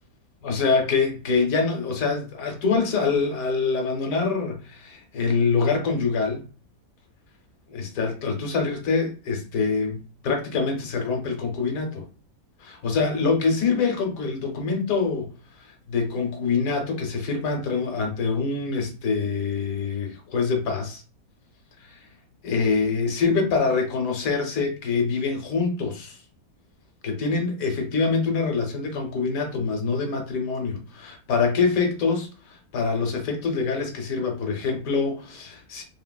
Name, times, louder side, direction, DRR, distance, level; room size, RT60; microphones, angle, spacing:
voice 1, 0.4-6.4 7.7-12.0 12.6-15.3 15.6-21.0 21.8-22.0 22.4-26.2 27.0-35.8, left 4 dB, 70° left, 1.1 m, -25 dB
2.8 x 2.7 x 2.2 m
omnidirectional pair, 1.6 m